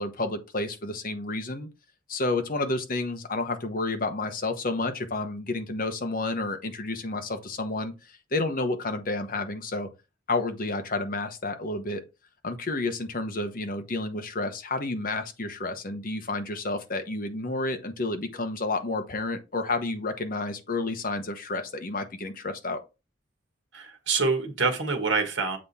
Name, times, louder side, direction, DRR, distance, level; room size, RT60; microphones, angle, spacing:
voice 1, 0.0-1.7 2.1-9.9 10.3-12.0 12.4-22.8, left 2 dB, 45° left, 1.0 m, -30 dB
voice 2, 23.7-25.6, right 4 dB, 60° right, 1.5 m, -26 dB
7.5 x 3.6 x 4.2 m
head